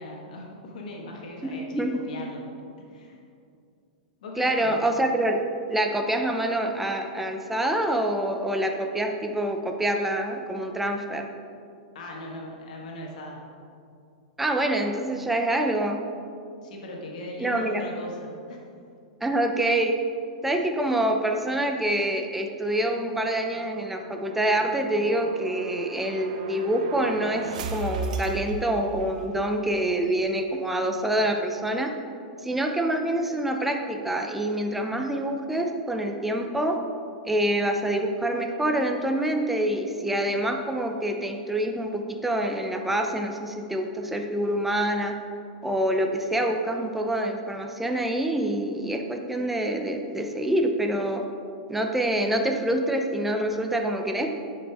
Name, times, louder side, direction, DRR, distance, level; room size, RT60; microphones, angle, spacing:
voice 1, 0.0-2.5 2.8-3.2 4.2-4.9 11.9-13.5 16.6-18.6, left 1 dB, 75° left, -1 dB, 1.5 m, -39 dB
voice 2, 1.4-2.0 4.4-5.4 5.7-11.2 14.4-16.0 17.4-17.8 19.2-20.0 20.4-31.9 32.4-36.8 37.2-45.1 45.6-51.2 51.7-54.3, right 1 dB, 5° right, 3 dB, 0.5 m, -26 dB
sound 1, 22.7-29.5, right 4 dB, 75° right, 0.7 m, -37 dB
10.5 x 5.3 x 3.5 m, 2.5 s
hypercardioid pair, 130°, 4 cm